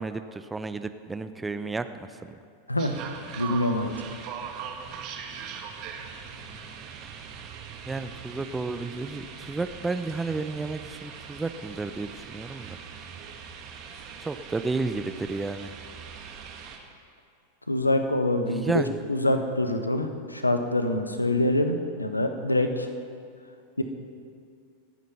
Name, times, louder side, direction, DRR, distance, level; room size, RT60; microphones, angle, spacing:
voice 1, 0.0-2.1 7.9-12.8 14.2-15.7 18.5-18.9, right 3 dB, 10° right, 10 dB, 0.7 m, -32 dB
sound 1, 2.8-16.8, right 6 dB, 40° right, 2.0 m, -41 dB
voice 2, 3.4-3.9 17.7-18.7 19.1-22.9 23.8-23.9, left 1 dB, 85° left, 7 dB, 1.2 m, -25 dB
27.5 x 9.3 x 5.6 m, 2.4 s
figure-of-eight pair, 90°, 0 cm